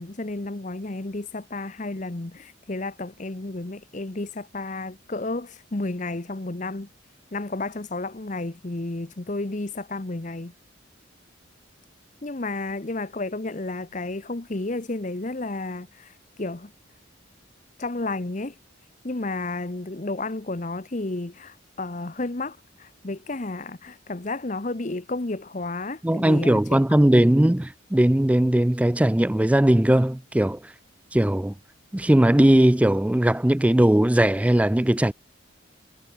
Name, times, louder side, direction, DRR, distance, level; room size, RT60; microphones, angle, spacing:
voice 1, 0.0-6.9 7.3-10.5 12.2-16.7 17.8-18.5 19.0-26.8, left 2 dB, 35° left, 0.9 m, -32 dB
voice 2, 26.0-30.7 31.1-31.5 31.9-35.1, right 1 dB, 5° right, 0.3 m, -19 dB
head